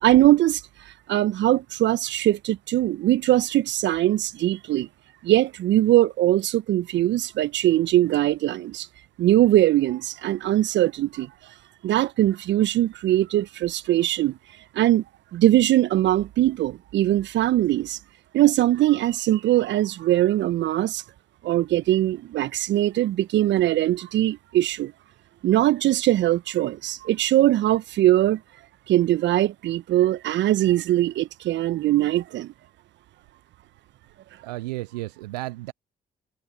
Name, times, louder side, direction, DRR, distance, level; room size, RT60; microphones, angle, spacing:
voice 1, 0.0-0.6 1.1-4.9 5.2-8.9 9.2-11.3 11.8-14.4 14.7-15.0 15.3-18.0 18.3-21.0 21.4-24.9 25.4-28.4 28.9-32.5, right 14 dB, 65° right, 1.3 m, -21 dB
voice 2, 34.4-35.7, right 20 dB, 80° right, 0.6 m, -33 dB
hypercardioid pair, 45°, 21 cm